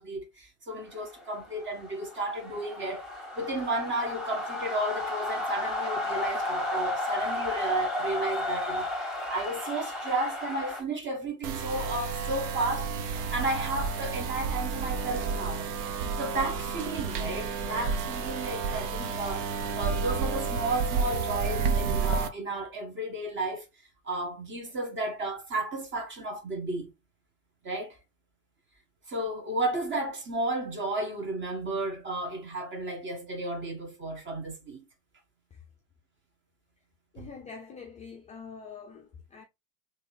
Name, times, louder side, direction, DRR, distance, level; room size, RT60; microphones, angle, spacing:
voice 1, 0.0-3.0 3.3-15.7 16.2-23.7 24.0-26.9 27.6-28.0 29.1-34.8 37.2-37.3, right 2 dB, 25° right, 1.6 m, -33 dB
sound 1, 0.9-10.8, left 1 dB, ahead, 1.6 m, -33 dB
sound 2, 11.4-22.3, right 5 dB, 55° right, 0.9 m, -31 dB
voice 2, 37.1-39.4, left 5 dB, 15° left, 0.5 m, -45 dB
3.7 x 2.9 x 3.2 m
hypercardioid pair, 90°, 43 cm